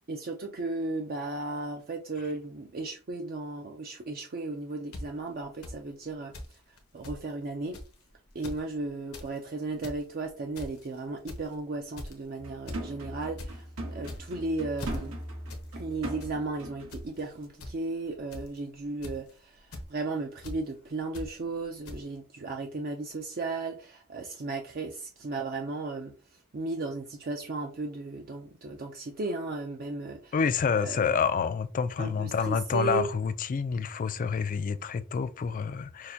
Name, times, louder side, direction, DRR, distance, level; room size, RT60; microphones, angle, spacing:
voice 1, 0.1-7.8 8.3-15.2 15.8-30.3 30.7-31.0 32.0-33.1, right 3 dB, 45° right, 0.5 m, -35 dB
sound 1, 4.9-5.0 5.6-5.7 6.3-6.5 6.8-6.9 7.0-7.2 7.7-7.9 8.3-8.6 9.0-9.3 9.7-10.0 10.6-10.9 11.3-11.5 12.0-12.2 12.7-12.8 13.1-13.5 14.0-14.4 14.8-15.0 15.5-15.6 15.9-16.3 16.9-17.0 17.6-17.7 18.3-18.6 19.0-19.3 19.7-19.9 20.4-20.6 21.1-21.3 21.9-22.0, left 1 dB, 80° left, 0.9 m, -40 dB
sound 2, 12.4-17.0 17.3-17.5, right 1 dB, 80° right, 1.4 m, -39 dB
voice 2, 30.3-36.1, left 6 dB, 40° left, 0.3 m, -28 dB
6.3 x 2.2 x 2.7 m
head